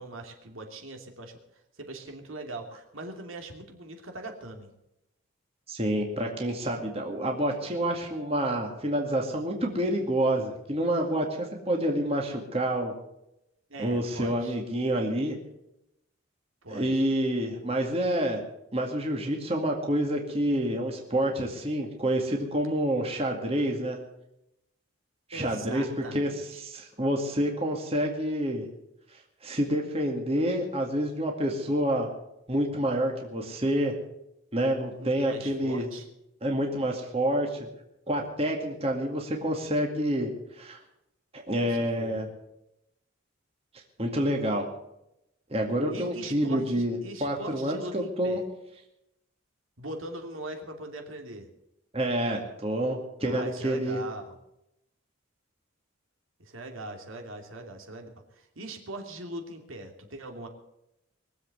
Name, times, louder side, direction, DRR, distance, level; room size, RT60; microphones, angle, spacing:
voice 1, 0.0-1.4 1.8-4.7 13.7-14.6 16.6-17.1 25.3-26.6 34.7-36.1 41.6-42.3 45.9-48.4 49.8-51.5 53.2-54.4 56.4-60.5, right 2 dB, 70° right, 3 dB, 2.8 m, -41 dB
voice 2, 5.7-12.9 13.8-15.4 16.7-18.4 18.7-24.0 25.3-25.8 26.1-26.3 26.6-28.6 29.4-32.1 32.5-33.9 34.5-35.9 36.4-37.6 38.1-40.3 40.6-40.8 41.3-42.3 44.0-44.7 45.5-48.4 51.9-54.0, right 1 dB, 30° right, 1 dB, 2.2 m, -28 dB
22.0 x 8.0 x 7.9 m, 0.84 s
head